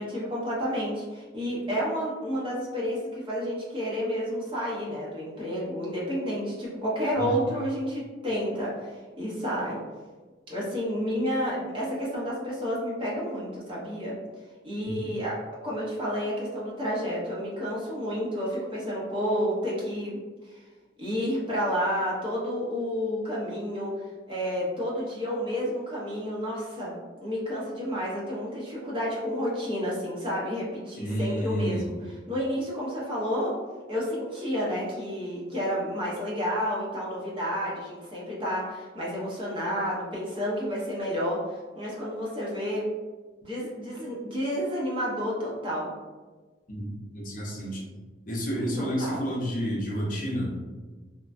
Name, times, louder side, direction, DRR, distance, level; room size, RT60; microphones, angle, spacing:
voice 1, 0.0-9.8 10.5-14.2 14.6-15.4 15.6-20.2 20.4-20.6 21.0-23.9 24.3-26.9 27.2-31.9 32.3-33.6 33.9-42.9 43.4-45.9 48.5-49.3, equal, 30° right, -6 dB, 0.8 m, -30 dB
voice 2, 7.1-7.4 14.8-15.2 31.0-31.9 46.7-47.8 48.3-50.5, equal, 45° left, -4 dB, 0.6 m, -30 dB
3.0 x 2.2 x 2.5 m, 1.3 s
head